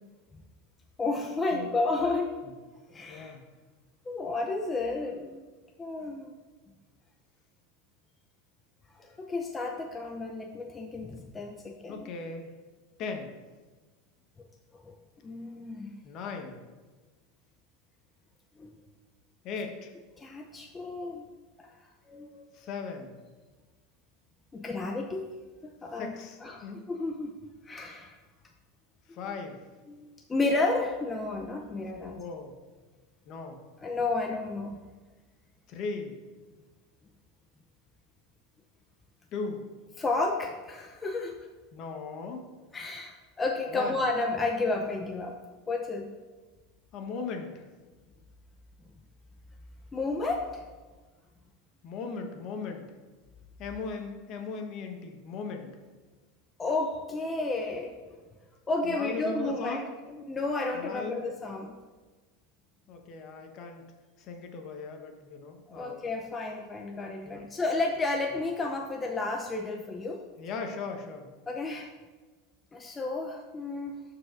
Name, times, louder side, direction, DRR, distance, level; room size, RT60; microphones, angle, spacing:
voice 1, 1.0-2.4 2.9-3.3 4.1-5.4 5.8-6.3 8.9-12.0 14.9-15.0 15.2-15.9 18.6-18.7 20.2-21.2 21.6-21.7 22.1-22.4 24.5-25.2 25.6-27.4 27.6-28.2 29.1-29.3 29.9-32.2 33.8-34.8 40.0-41.4 42.7-45.4 45.7-46.1 49.9-50.6 56.6-58.2 58.7-61.8 65.7-70.3 71.5-71.9 72.7-74.0, left 3 dB, 20° left, 2 dB, 0.6 m, -32 dB
voice 2, 3.1-3.4 11.9-12.5 13.0-13.3 16.0-16.6 19.4-19.9 22.5-23.1 26.0-26.8 29.1-29.6 32.1-32.5 33.3-33.6 35.7-36.1 39.3-39.6 41.7-42.4 43.7-44.0 46.9-47.7 51.8-52.9 53.6-55.7 58.8-59.9 60.7-61.3 62.9-63.9 64.2-66.0 67.2-67.5 70.4-71.3, left 4 dB, 50° left, 4 dB, 1.2 m, -38 dB
13.0 x 4.8 x 2.6 m, 1.3 s
supercardioid pair, 110°, 0 cm